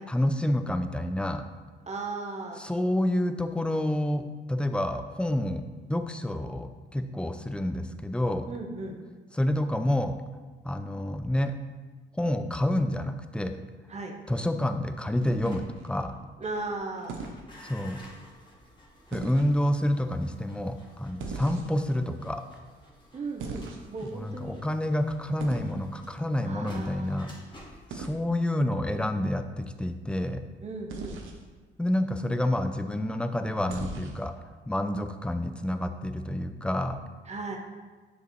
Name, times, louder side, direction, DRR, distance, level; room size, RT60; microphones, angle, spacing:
voice 1, 0.1-1.5 2.6-4.2 4.5-5.6 5.9-8.5 9.3-10.2 10.6-11.5 12.2-13.6 14.3-16.2 17.6-18.0 19.1-22.4 24.1-27.3 27.9-30.4 31.8-34.3 34.7-37.0, left 1 dB, 5° left, 8 dB, 0.4 m, -28 dB
voice 2, 1.9-2.6 8.5-9.0 13.9-14.1 16.4-17.2 21.2-21.4 23.1-24.6 26.4-27.4 30.6-31.2 37.3-37.6, right 3 dB, 35° right, 2 dB, 1.0 m, -36 dB
sound 1, 15.2-15.9 17.1-17.4 19.1-19.5 21.2-21.9 23.4-24.1 25.4-25.8 27.9-28.2 30.9-31.4 33.7-34.3, right 4 dB, 80° right, 0.8 m, -39 dB
sound 2, 15.4-32.3 32.6-33.0, equal, 25° left, 1.6 m, -53 dB
6.5 x 5.1 x 3.2 m, 1.3 s
cardioid pair, 90°, 20 cm